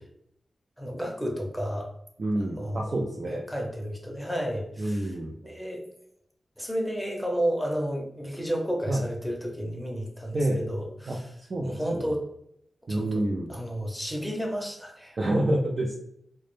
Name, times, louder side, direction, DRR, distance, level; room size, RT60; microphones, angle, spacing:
voice 1, 0.8-1.9 2.6-2.9 3.3-5.1 5.4-5.8 6.6-11.2 11.6-12.2 12.9-13.2 13.5-15.2, equal, 5° left, 0 dB, 0.6 m, -32 dB
voice 2, 2.2-3.4 4.8-5.3 8.9-9.0 10.3-10.6 11.1-11.2 11.5-12.1 12.9-13.5 15.2-16.0, right 1 dB, 55° right, -2 dB, 0.4 m, -28 dB
2.1 x 2.0 x 3.0 m, 0.74 s
cardioid pair, 55°, 0 cm